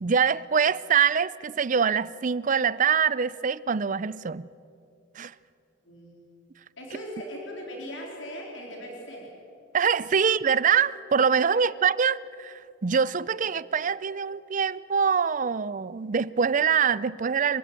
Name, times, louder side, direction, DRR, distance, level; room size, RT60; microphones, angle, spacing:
voice 1, 0.0-4.5 5.2-5.3 9.7-17.6, right 6 dB, 40° right, 19 dB, 0.5 m, -24 dB
voice 2, 6.8-9.3 11.5-11.6, equal, 75° left, 0 dB, 4.2 m, -39 dB
26.0 x 16.0 x 8.9 m, 2.7 s
head